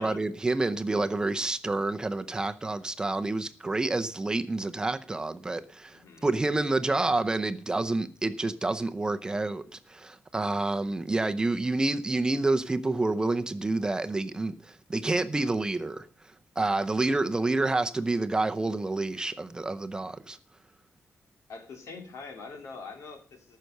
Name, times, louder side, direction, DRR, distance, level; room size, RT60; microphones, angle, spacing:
voice 1, 0.0-16.1 16.6-20.4, right 2 dB, 15° right, 0.6 m, -28 dB
voice 2, 5.9-6.3 16.9-17.2 21.5-23.6, left 4 dB, 75° left, 2.9 m, -44 dB
14.0 x 6.6 x 6.6 m
wide cardioid pair, 165°, 5 cm